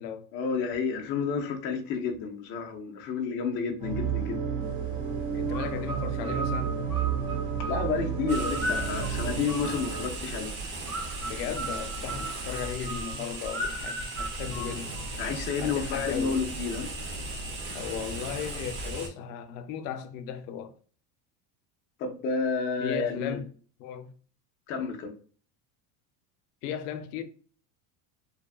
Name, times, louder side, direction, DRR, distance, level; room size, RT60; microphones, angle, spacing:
voice 1, 0.3-4.4 7.6-10.5 12.0-12.3 15.2-16.9 22.0-23.4 24.7-25.1, left 5 dB, 30° left, 0.3 m, -30 dB
sound 1, 3.8-10.0, right 7 dB, 25° right, 0.5 m, -31 dB
voice 2, 5.3-6.8 11.2-14.9 15.6-16.4 17.7-20.8 22.8-23.5 23.8-24.1 26.6-27.2, left 8 dB, 85° left, 0.5 m, -36 dB
sound 2, 5.5-10.2 10.9-15.3, right 1 dB, 5° left, 1.0 m, -37 dB
sound 3, 8.3-19.1, right 2 dB, 65° right, 1.0 m, -37 dB
2.7 x 2.2 x 2.3 m
cardioid pair, 145°, 45 cm